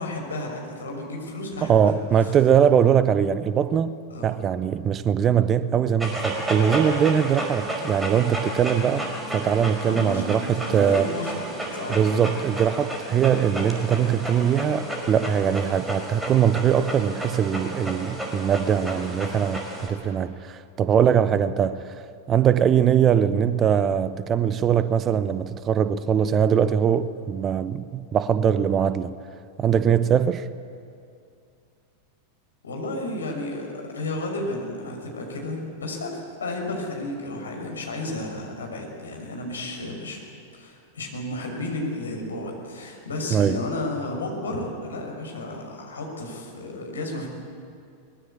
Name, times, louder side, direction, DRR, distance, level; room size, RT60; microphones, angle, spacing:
voice 1, 0.0-2.4 4.1-4.3 9.8-10.4 10.7-11.5 11.7-12.3 32.6-33.7 33.9-40.2 40.5-47.3, left 2 dB, 70° left, 6.0 m, -32 dB
voice 2, 1.6-9.1 9.3-11.1 11.9-29.1 29.6-30.5 43.3-43.6, right 8 dB, 25° right, 0.8 m, -21 dB
Dog, 6.0-19.9, right 1 dB, 5° right, 5.0 m, -32 dB
23.0 x 20.5 x 8.6 m
figure-of-eight pair, 90°, 0 cm